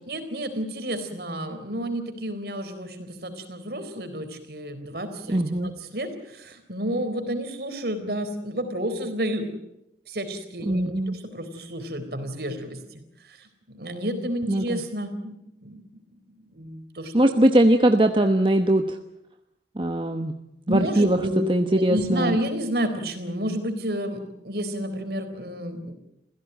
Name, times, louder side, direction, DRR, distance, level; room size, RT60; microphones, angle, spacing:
voice 1, 0.1-9.5 10.1-15.8 16.5-17.3 20.7-21.4 21.7-25.9, equal, 60° right, 8 dB, 4.0 m, -31 dB
voice 2, 5.3-5.7 10.7-11.2 14.5-14.8 17.1-18.8 19.8-20.3 20.7-21.2 21.5-22.4, right 1 dB, 30° right, 6 dB, 1.1 m, -20 dB
28.0 x 16.0 x 9.1 m, 0.85 s
head